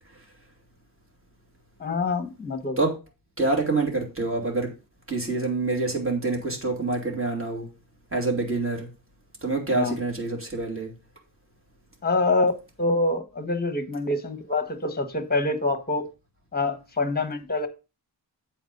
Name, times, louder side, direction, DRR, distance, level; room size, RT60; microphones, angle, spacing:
voice 1, 1.8-2.8 9.8-10.0 12.0-12.5 12.8-16.1 16.5-17.7, left 2 dB, 20° left, 10 dB, 1.2 m, -25 dB
voice 2, 3.4-4.7 5.1-7.7 8.1-8.9 9.4-10.9, right 3 dB, 30° right, 1 dB, 2.6 m, -26 dB
8.0 x 4.5 x 5.3 m, 0.29 s
wide cardioid pair, 125°, 44 cm